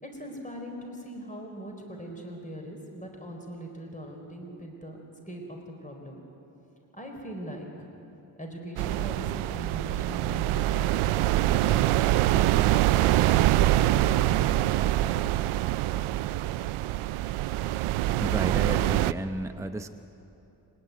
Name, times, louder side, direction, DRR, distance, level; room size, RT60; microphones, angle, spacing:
voice 1, 0.0-6.2 6.9-7.9 8.4-11.8, right 1 dB, 15° left, 2 dB, 4.4 m, -41 dB
sound 1, 8.8-19.1, right 14 dB, 80° right, 0.6 m, -24 dB
voice 2, 18.2-19.9, right 1 dB, 5° right, 7 dB, 0.9 m, -32 dB
28.5 x 10.5 x 9.4 m, 2.9 s
supercardioid pair, 40°, 49 cm